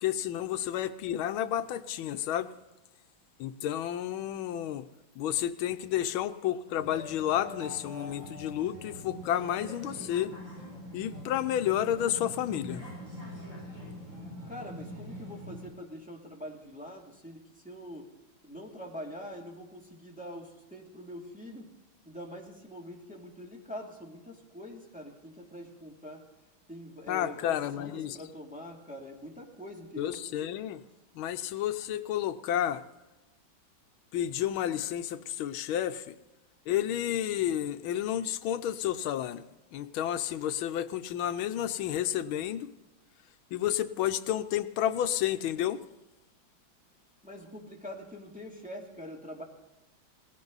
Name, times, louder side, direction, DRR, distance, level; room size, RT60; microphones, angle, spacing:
voice 1, 0.0-2.5 3.4-4.9 5.2-10.3 10.9-12.8 27.1-28.2 30.0-30.8 31.1-32.8 34.1-36.2 36.7-39.4 39.7-42.7 43.5-45.8, left 11 dB, 90° left, 1.6 m, -31 dB
sound 1, 6.7-15.7, left 1 dB, 65° right, 8.6 m, -43 dB
voice 2, 14.5-18.1 18.4-21.7 22.0-26.2 26.7-30.2 47.2-49.4, equal, 5° right, 2.5 m, -44 dB
19.0 x 16.5 x 4.0 m
omnidirectional pair, 2.2 m